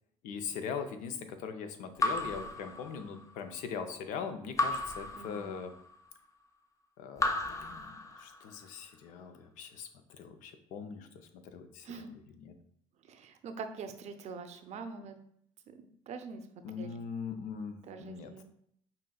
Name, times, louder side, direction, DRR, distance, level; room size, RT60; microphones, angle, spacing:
voice 1, 0.2-5.7 7.0-12.5 16.6-18.4, left 6 dB, 70° left, 8 dB, 0.5 m, -41 dB
Raindrop / Drip, 2.0-3.4 4.6-5.9 7.2-8.6, left 2 dB, 25° left, 0.6 m, -34 dB
voice 2, 5.1-5.5 11.8-12.1 13.1-15.2 15.7-15.8 16.1-16.4 16.8-16.9 17.9-18.4, right 5 dB, 55° right, 8 dB, 0.5 m, -44 dB
5.5 x 2.6 x 2.3 m, 0.68 s
supercardioid pair, 70°, 14 cm